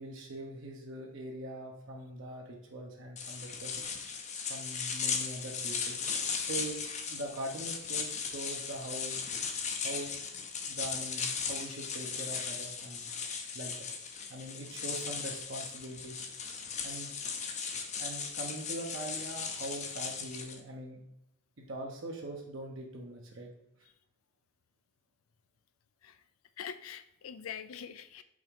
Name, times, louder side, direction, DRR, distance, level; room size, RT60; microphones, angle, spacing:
voice 1, 0.0-3.7 4.5-6.0 6.4-6.8 7.1-9.2 9.8-10.1 10.7-13.1 13.5-13.9 14.3-16.2 16.8-17.1 18.0-21.0 21.6-23.5, right 1 dB, 70° right, -1 dB, 1.0 m, -42 dB
sound 1, 3.2-20.6, left 6 dB, 35° left, 0.6 m, -37 dB
voice 2, 26.6-28.2, left 8 dB, 85° left, 11 dB, 0.5 m, -43 dB
5.3 x 3.6 x 5.2 m, 0.82 s
head